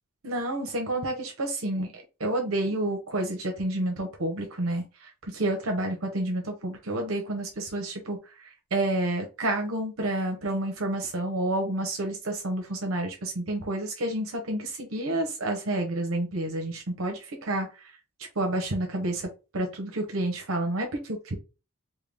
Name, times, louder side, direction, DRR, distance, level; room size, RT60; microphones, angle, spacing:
voice 1, 0.2-8.2 8.4-17.9 18.4-19.3 19.5-21.3, right 1 dB, 85° right, 2 dB, 0.9 m, -29 dB
3.7 x 2.2 x 3.4 m, 0.30 s
head